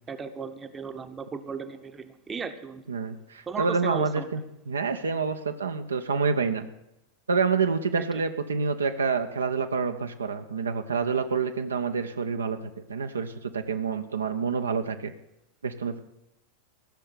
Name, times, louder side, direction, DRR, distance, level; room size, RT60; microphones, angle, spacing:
voice 1, 0.1-2.8 3.5-4.3, right 5 dB, 20° right, 9 dB, 1.0 m, -36 dB
voice 2, 2.9-6.7 7.3-12.6 12.9-15.1 15.6-16.0, right 5 dB, 75° right, 6 dB, 0.9 m, -28 dB
15.0 x 6.6 x 9.4 m, 0.88 s
figure-of-eight pair, 90°, 0 cm